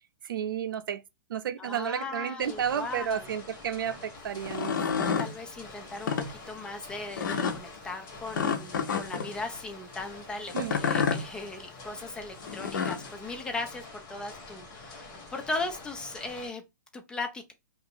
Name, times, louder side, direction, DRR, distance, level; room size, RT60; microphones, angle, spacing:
voice 1, 0.2-1.0 1.3-4.8 10.5-10.8, right 8 dB, 85° right, 0.5 m, -32 dB
voice 2, 1.6-3.3 5.2-16.6 16.9-17.5, left 3 dB, 5° left, 0.3 m, -38 dB
sound 1, 2.4-16.5, left 3 dB, 30° left, 1.4 m, -47 dB
sound 2, 4.4-5.3 5.9-6.3 7.2-7.6 8.3-9.3 10.5-11.2 12.4-13.1, left 6 dB, 70° left, 0.8 m, -29 dB
2.8 x 2.4 x 3.6 m
hypercardioid pair, 160°, 11 cm